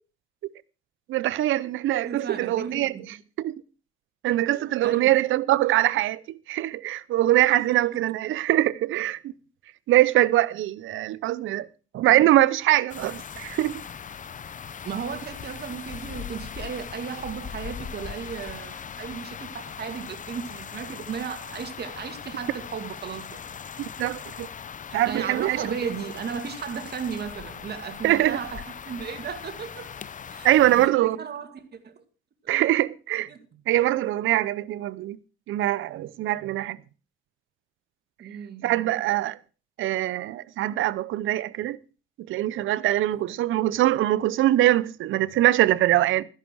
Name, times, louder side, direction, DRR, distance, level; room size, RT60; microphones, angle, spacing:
voice 1, 1.1-2.9 3.4-3.5 4.2-6.2 6.5-9.3 9.9-11.7 11.9-13.8 23.8-24.5 24.9-25.7 28.0-28.4 30.4-31.3 32.5-33.3 33.7-35.2 35.5-36.8 38.6-39.4 39.8-41.8 42.3-46.2, right 14 dB, 80° right, 0.7 m, -23 dB
voice 2, 2.0-3.0 4.5-5.2 7.5-7.8 14.8-23.6 24.9-29.9 30.3-32.0 33.3-33.6 38.2-39.0 43.1-43.3, right 6 dB, 55° right, 2.3 m, -35 dB
sound 1, 12.9-30.9, left 7 dB, 40° left, 0.8 m, -39 dB
13.5 x 11.0 x 4.7 m
cardioid pair, 90°, 20 cm